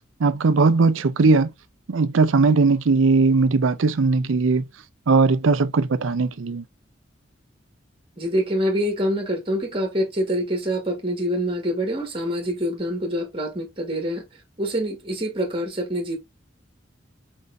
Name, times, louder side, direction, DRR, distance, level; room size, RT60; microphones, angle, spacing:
voice 1, 0.2-1.5 1.9-4.6 5.1-6.6, right 4 dB, 80° right, 0.5 m, -19 dB
voice 2, 8.2-14.2 14.6-16.2, equal, 25° right, 1.7 m, -25 dB
4.6 x 3.9 x 2.6 m
head